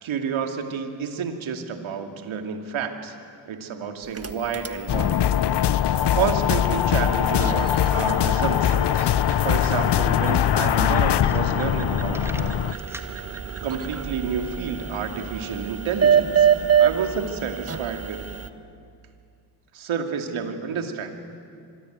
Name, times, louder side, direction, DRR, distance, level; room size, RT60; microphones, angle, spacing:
voice 1, 0.0-3.2 3.5-5.2 5.8-9.1 9.4-12.6 13.6-16.5 16.8-18.3 19.7-21.1, right 6 dB, 75° right, 5 dB, 2.7 m, -29 dB
sound 1, 4.0-18.5, right 8 dB, 30° right, 1.5 m, -27 dB
sound 2, 4.9-12.7, left 11 dB, 55° left, 0.8 m, -22 dB
sound 3, 11.2-11.8 12.1-13.1, right 1 dB, 5° right, 2.3 m, -41 dB
25.0 x 22.0 x 9.3 m, 2.3 s
supercardioid pair, 55°, 48 cm